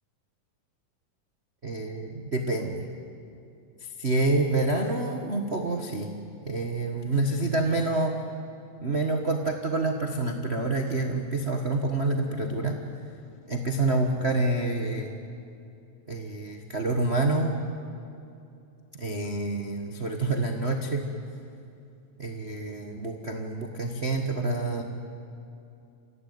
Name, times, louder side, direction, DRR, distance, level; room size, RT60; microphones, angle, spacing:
voice 1, 1.6-2.9 3.8-6.1 6.4-8.1 8.8-12.8 13.5-15.1 16.1-17.6 19.0-21.1 22.2-24.8, right 2 dB, 90° right, 2 dB, 0.5 m, -27 dB
27.5 x 16.5 x 9.4 m, 2.7 s
omnidirectional pair, 3.8 m